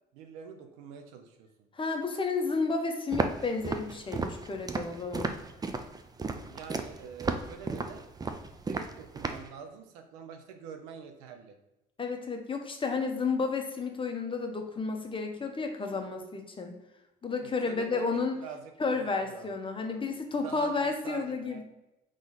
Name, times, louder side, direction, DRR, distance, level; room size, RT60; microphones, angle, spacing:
voice 1, 0.1-1.7 6.5-8.1 8.7-11.6 17.6-19.5 19.9-20.0 20.4-21.6, right 7 dB, 85° right, 5 dB, 0.6 m, -45 dB
voice 2, 1.7-5.3 12.0-16.7 17.2-18.4 18.8-21.6, left 4 dB, 25° left, 4 dB, 0.8 m, -32 dB
Walk footsteps, 3.1-9.5, right 3 dB, 20° right, 0.5 m, -34 dB
3.8 x 3.2 x 3.9 m, 0.94 s
hypercardioid pair, 65°, 19 cm